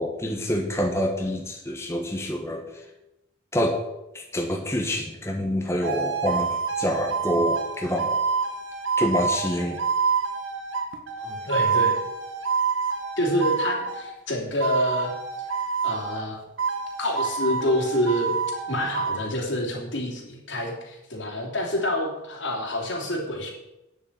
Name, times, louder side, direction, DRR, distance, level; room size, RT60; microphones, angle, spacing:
voice 1, 0.0-2.8 3.5-3.8 4.1-8.2 9.0-9.8, equal, 15° left, 2 dB, 1.2 m, -27 dB
sound 1, 5.8-14.1 14.6-16.3 16.6-19.2, right 5 dB, 90° right, 1.5 m, -27 dB
voice 2, 11.2-12.0 13.2-15.1 15.8-16.4 17.0-18.3 18.7-23.5, left 1 dB, 80° left, -1 dB, 3.3 m, -27 dB
9.7 x 7.2 x 8.1 m, 0.94 s
head